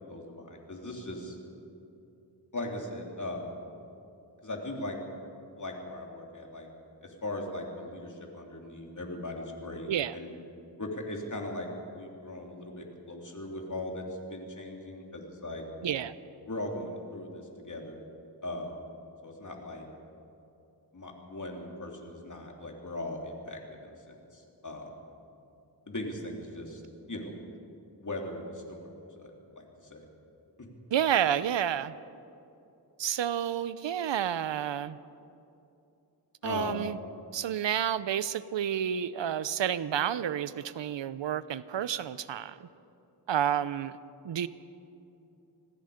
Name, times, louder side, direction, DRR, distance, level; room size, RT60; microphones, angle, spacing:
voice 1, 0.1-1.4 2.5-3.6 4.4-5.0 5.6-6.7 7.0-10.4 10.8-15.6 16.5-18.0 18.4-18.8 19.2-19.9 20.9-24.9 25.9-26.8 27.1-27.4 28.0-30.0 30.6-30.7 36.4-36.8, left 1 dB, 45° left, 1 dB, 3.6 m, -39 dB
voice 2, 15.8-16.2 30.9-31.9 33.0-35.0 36.4-37.0 37.3-42.7 43.3-43.9 44.2-44.5, right 9 dB, 85° right, 16 dB, 0.7 m, -30 dB
26.0 x 19.5 x 5.2 m, 2.8 s
wide cardioid pair, 70°, 43 cm